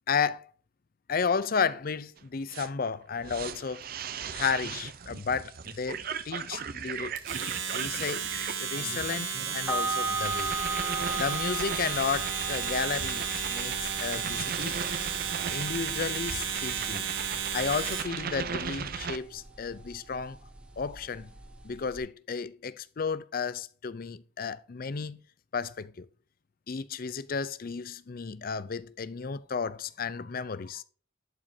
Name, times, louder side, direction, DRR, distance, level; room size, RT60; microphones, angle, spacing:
voice 1, 0.1-0.5 1.1-3.8 4.3-7.2 7.7-8.3 8.6-10.6 11.1-14.8 15.5-17.1 17.5-20.4 20.8-21.3 21.6-25.2 25.5-26.1 26.7-30.8, left 5 dB, 50° left, 0.5 m, -33 dB
sound 1, 2.2-2.3 2.5-19.2, right 6 dB, 50° right, 0.6 m, -38 dB
Domestic sounds home sounds, 7.2-18.2, right 7 dB, 85° right, 1.6 m, -33 dB
sound 2, 9.7-22.0, right 3 dB, 5° right, 1.1 m, -38 dB
11.0 x 5.2 x 2.7 m
head